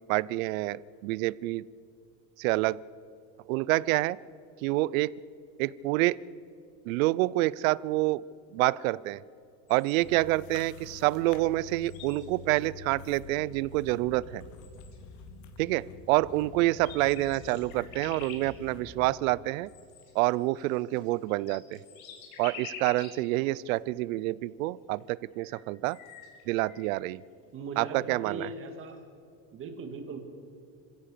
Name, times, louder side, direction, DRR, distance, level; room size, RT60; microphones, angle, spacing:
voice 1, 0.1-1.6 2.4-2.8 3.5-4.2 4.6-5.1 5.6-6.2 6.9-8.2 8.5-9.2 9.7-14.4 15.6-19.7 20.1-21.8 22.4-26.0 26.5-27.2 27.8-28.5, right 18 dB, 80° right, 22 dB, 0.6 m, -27 dB
sound 1, 9.7-10.2 11.1-11.3 11.5-12.6 13.3-13.4 14.2-14.3 14.5-15.2 16.3-16.4 16.7-18.5 19.7-23.2 23.8-23.9 25.0-25.1 25.3-27.0, left 5 dB, 85° left, 4.3 m, -47 dB
sound 2, 10.0-19.1, left 5 dB, 45° left, 1.8 m, -47 dB
voice 2, 27.5-29.0 29.5-30.2, right 4 dB, 30° right, 5 dB, 2.4 m, -39 dB
26.5 x 16.0 x 6.8 m, 2.5 s
supercardioid pair, 155°, 41 cm